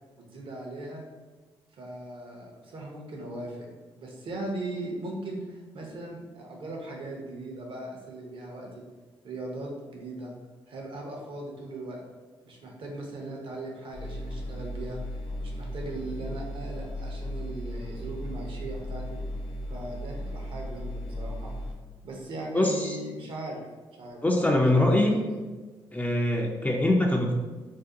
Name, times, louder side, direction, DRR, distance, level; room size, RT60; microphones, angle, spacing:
voice 1, 0.2-1.0 1.8-3.7 4.0-8.8 9.2-10.3 10.7-12.0 12.5-19.2 19.7-21.5 22.0-23.6 24.0-24.5 24.7-25.4, right 2 dB, 65° right, -1 dB, 0.8 m, -39 dB
sound 1, 13.9-21.7, left 1 dB, 75° left, 0.5 m, -36 dB
voice 2, 22.5-23.0 24.2-25.1 25.9-27.4, left 1 dB, 15° left, 0 dB, 0.4 m, -23 dB
2.6 x 2.1 x 3.6 m, 1.3 s
cardioid pair, 70°, 10 cm